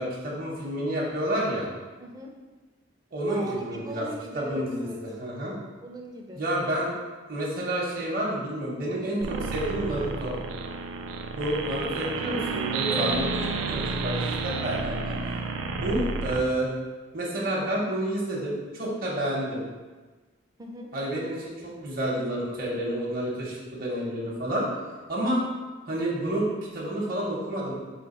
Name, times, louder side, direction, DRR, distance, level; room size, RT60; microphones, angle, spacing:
voice 1, 0.0-1.7 3.1-4.1 4.3-5.6 6.4-6.9 7.3-10.4 11.3-13.3 13.7-15.2 15.7-16.7 17.1-19.7 20.9-24.7 25.1-25.4 25.9-27.7, right 1 dB, 50° right, -4 dB, 0.8 m, -29 dB
voice 2, 2.0-2.3 3.3-5.0 5.8-6.4 11.8-12.0 12.7-13.8 20.6-20.9, right 1 dB, 20° right, 1 dB, 0.4 m, -38 dB
sound 1, 9.2-16.4, right 4 dB, 90° right, 0.4 m, -30 dB
3.3 x 3.0 x 4.2 m, 1.3 s
head